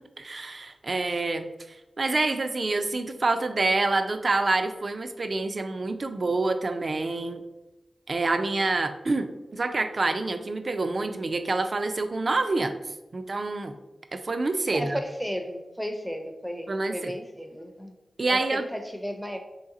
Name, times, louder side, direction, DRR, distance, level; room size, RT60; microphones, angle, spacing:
voice 1, 0.2-7.4 8.1-12.8 13.1-13.7 14.1-15.0 16.7-17.1 18.2-18.6, right 3 dB, 55° right, 8 dB, 0.3 m, -27 dB
voice 2, 14.7-17.9 18.3-19.4, equal, ahead, 4 dB, 0.5 m, -34 dB
3.2 x 2.8 x 3.7 m, 1.0 s
wide cardioid pair, 70°, 0 cm